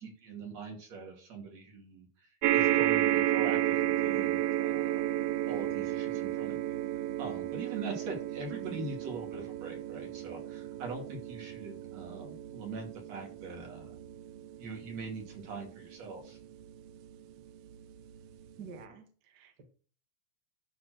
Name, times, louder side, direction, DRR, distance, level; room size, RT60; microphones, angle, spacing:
voice 1, 0.2-2.1 2.5-5.0 5.5-6.8 7.2-13.9 14.6-16.4, right 4 dB, 60° right, 1 dB, 3.6 m, -42 dB
sound 1, 2.4-17.0 17.7-17.8 18.1-18.2, right 13 dB, 80° right, 1.4 m, -32 dB
voice 2, 8.5-8.9 18.6-19.6, right 6 dB, 45° right, 5 dB, 1.5 m, -47 dB
12.0 x 4.3 x 6.4 m, 0.42 s
omnidirectional pair, 3.4 m